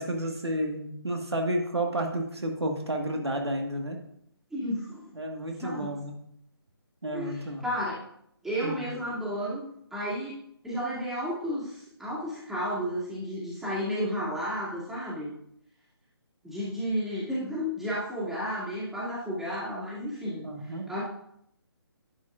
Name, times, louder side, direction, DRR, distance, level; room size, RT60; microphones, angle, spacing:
voice 1, 0.0-4.0 5.1-6.1 7.0-7.6 8.6-8.9 20.4-20.9, right 1 dB, 80° right, 2 dB, 1.5 m, -31 dB
voice 2, 4.5-5.1 5.6-5.9 7.1-8.0 8.4-15.3 16.4-21.0, equal, ahead, -9 dB, 2.1 m, -32 dB
10.5 x 8.4 x 2.4 m, 0.72 s
figure-of-eight pair, 145°, 13 cm